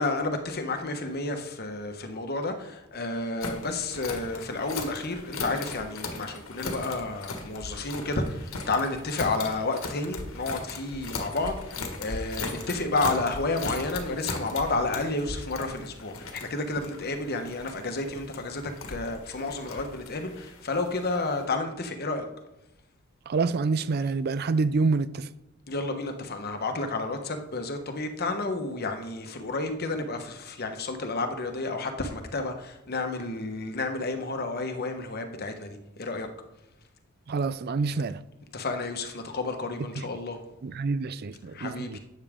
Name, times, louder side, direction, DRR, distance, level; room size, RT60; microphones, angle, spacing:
voice 1, 0.0-22.3 25.7-36.3 38.5-40.4 41.5-42.0, left 3 dB, 50° left, 1.2 m, -31 dB
sound 1, 3.4-21.4, left 3 dB, 85° left, 1.6 m, -38 dB
voice 2, 23.3-25.3 37.3-38.2 40.6-42.0, right 4 dB, 50° right, 0.4 m, -27 dB
12.0 x 8.8 x 3.7 m
head